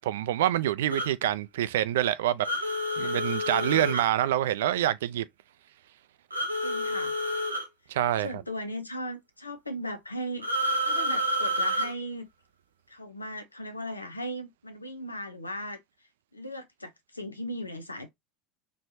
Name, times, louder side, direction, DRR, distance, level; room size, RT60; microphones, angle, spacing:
voice 1, 0.0-2.5 3.0-5.3 7.9-8.4, right 12 dB, 65° right, 0.4 m, -26 dB
sound 1, 0.9-1.1 2.4-4.1 6.3-7.7 10.4-11.9, equal, 85° right, 0.8 m, -29 dB
voice 2, 3.5-4.0 6.6-7.2 8.2-12.3 12.9-15.8 16.3-18.1, equal, 85° left, 0.7 m, -37 dB
4.5 x 3.1 x 2.7 m
figure-of-eight pair, 75°, 0 cm